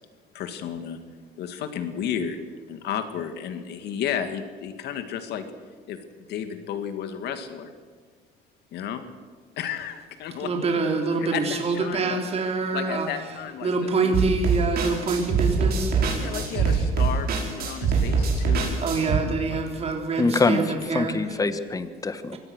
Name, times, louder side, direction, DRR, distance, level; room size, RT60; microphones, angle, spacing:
voice 1, 0.3-1.0 1.4-2.4 2.7-5.5 5.9-6.0 6.3-7.7 8.7-9.1 9.6-10.5 11.2-12.2 12.7-14.1 16.2-18.8 19.2-19.6, left 8 dB, 75° left, 8 dB, 2.2 m, -32 dB
voice 2, 10.4-13.1 13.6-16.7 18.8-21.2 22.3-22.4, right 3 dB, 40° right, 3 dB, 3.5 m, -26 dB
sound 1, 14.1-19.2, right 5 dB, 65° right, 5.4 m, -23 dB
voice 3, 20.2-22.4, left 3 dB, 20° left, 11 dB, 1.4 m, -24 dB
24.0 x 17.0 x 6.4 m, 1.6 s
cardioid pair, 110°, 17 cm